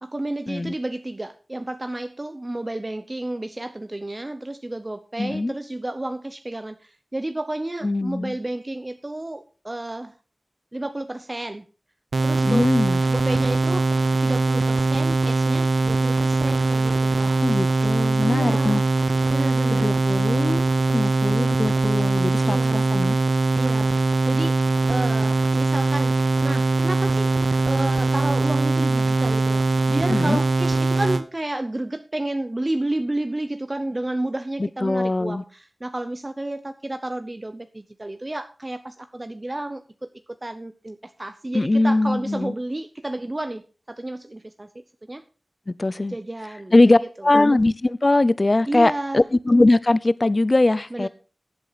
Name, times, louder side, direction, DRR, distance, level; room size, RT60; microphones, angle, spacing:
voice 1, 0.0-10.1 10.7-11.6 12.2-12.7 13.1-13.9 14.2-17.5 18.3-18.8 19.3-20.0 22.4-22.9 23.5-24.6 24.9-27.3 27.7-45.2 46.1-47.3 48.7-49.2 50.9-51.1, right 1 dB, 35° right, 0.7 m, -31 dB
voice 2, 5.2-5.5 7.8-8.4 12.4-13.0 17.4-18.8 19.7-20.6 20.9-23.2 30.1-30.4 34.6-35.4 41.5-42.5 45.7-46.2 46.7-51.1, left 2 dB, 45° left, 0.6 m, -21 dB
sound 1, 12.1-31.2, right 3 dB, 85° right, 0.8 m, -21 dB
15.0 x 8.3 x 4.1 m
wide cardioid pair, 55°, 0 cm